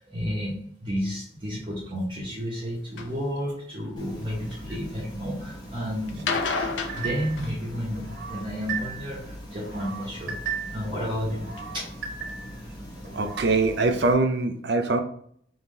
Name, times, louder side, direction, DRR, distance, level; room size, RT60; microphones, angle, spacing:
voice 1, 0.0-11.8, equal, 30° right, -6 dB, 1.1 m, -32 dB
sound 1, 3.0-3.1 3.8-4.5 6.1-8.1 9.6-10.2 10.9-11.0 11.6-11.7 12.0-12.1 12.3-12.4, left 4 dB, 90° left, 0.6 m, -31 dB
sound 2, 4.0-14.1, equal, 25° left, 0.9 m, -41 dB
sound 3, 6.9-7.5 7.9-9.2 9.6-10.9 11.3-12.6 13.0-13.5, right 7 dB, 85° right, 1.3 m, -36 dB
voice 2, 13.1-15.0, right 3 dB, 65° right, 6 dB, 0.5 m, -23 dB
3.7 x 2.9 x 3.8 m, 0.62 s
head